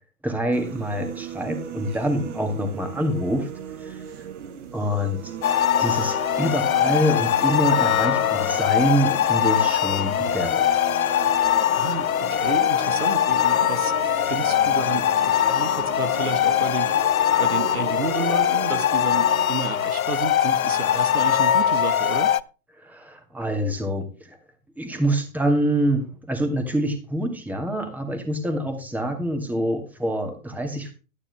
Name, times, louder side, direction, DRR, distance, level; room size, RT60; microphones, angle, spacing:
voice 1, 0.2-3.5 3.8-4.3 4.7-5.3 5.8-10.9 22.8-24.4 24.8-30.9, right 1 dB, 5° right, 2.3 m, -26 dB
sound 1, 0.5-19.5, right 8 dB, 55° right, 1.9 m, -37 dB
sound 2, 5.4-22.4, left 10 dB, 75° left, 0.7 m, -22 dB
voice 2, 11.8-17.0 17.4-22.3, right 5 dB, 85° right, 1.5 m, -32 dB
12.0 x 9.8 x 3.5 m
figure-of-eight pair, 115°, 42 cm